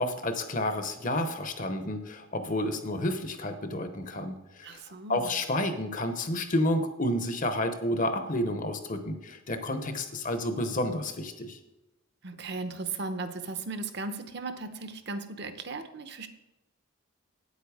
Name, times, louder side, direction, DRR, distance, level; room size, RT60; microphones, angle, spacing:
voice 1, 0.0-4.8 5.1-11.6, left 1 dB, 35° left, 8 dB, 0.8 m, -30 dB
voice 2, 4.6-5.4 12.2-16.3, right 3 dB, 50° right, 9 dB, 0.8 m, -37 dB
8.9 x 8.2 x 4.8 m, 0.98 s
head